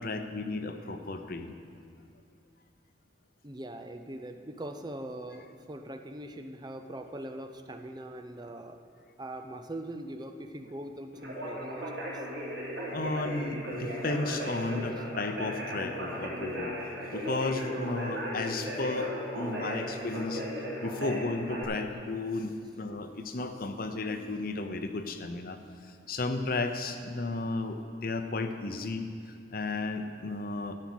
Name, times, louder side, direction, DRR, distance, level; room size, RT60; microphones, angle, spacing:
voice 1, 0.0-1.5 12.9-16.7 17.1-20.5 20.8-25.6 26.1-29.1 29.5-30.7, left 3 dB, 50° left, 7 dB, 0.8 m, -33 dB
voice 2, 3.4-8.8 9.2-12.2, right 1 dB, 20° right, 7 dB, 0.6 m, -41 dB
Conversation, 11.1-21.6, equal, 75° right, 3.6 m, -36 dB
13.0 x 8.6 x 6.3 m, 2.4 s
head